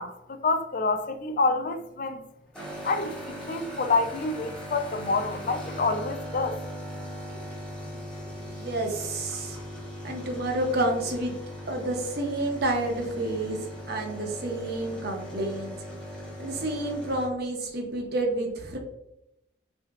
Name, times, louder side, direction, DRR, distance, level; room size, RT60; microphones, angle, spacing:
voice 1, 0.0-2.2 2.8-6.6, left 3 dB, 40° left, 0.4 m, -27 dB
sound 1, 2.5-17.3, equal, 5° left, 1.0 m, -39 dB
voice 2, 8.3-9.6 10.0-11.3 11.7-13.6 13.9-15.8 16.4-18.8, right 1 dB, 50° right, 0.9 m, -29 dB
6.1 x 2.8 x 2.5 m
head